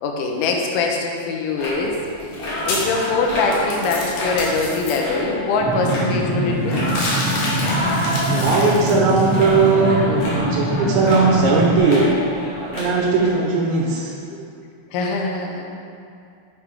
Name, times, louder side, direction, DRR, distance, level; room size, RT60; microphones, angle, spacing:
voice 1, 0.0-6.9 14.9-15.6, left 3 dB, 85° left, 1 dB, 3.4 m, -23 dB
sound 1, 1.6-13.3, left 1 dB, 45° left, 2.8 m, -28 dB
sound 2, 2.1-4.9 6.7-9.7, left 2 dB, 60° left, 3.4 m, -29 dB
sound 3, 5.6-11.8, right 1 dB, 50° right, 0.9 m, -24 dB
voice 2, 8.3-12.1 12.7-14.1, right 4 dB, 80° right, -2 dB, 3.1 m, -18 dB
9.5 x 7.5 x 4.7 m, 2.4 s
omnidirectional pair, 5.3 m